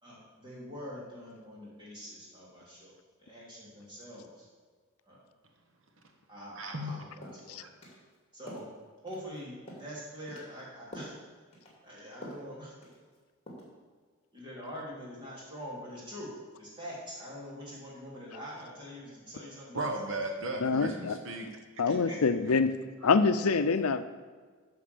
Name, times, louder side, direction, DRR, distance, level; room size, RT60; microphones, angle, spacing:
voice 1, 0.0-2.9 3.2-4.5 5.1-5.2 6.3-7.6 8.3-8.7 9.0-11.1 11.8-12.7 14.3-16.3 16.6-19.9 20.7-20.8 21.8-22.2, equal, 20° right, -6 dB, 3.1 m, -44 dB
voice 2, 6.6-6.9 7.6-7.7 19.7-21.5, right 1 dB, 65° right, 3 dB, 1.1 m, -35 dB
sound 1, 6.9-7.0 7.2-7.4 7.8-8.0 8.5-8.7 9.1-9.4 9.7-9.9 10.3-10.5 10.9-11.2 11.5-11.8 12.2-12.5 12.8-13.2 13.5-13.7, equal, 30° left, 2.5 m, -46 dB
voice 3, 20.6-21.2 21.8-22.7 23.0-24.0, left 4 dB, 85° left, 11 dB, 0.6 m, -25 dB
8.9 x 6.0 x 6.9 m, 1.5 s
head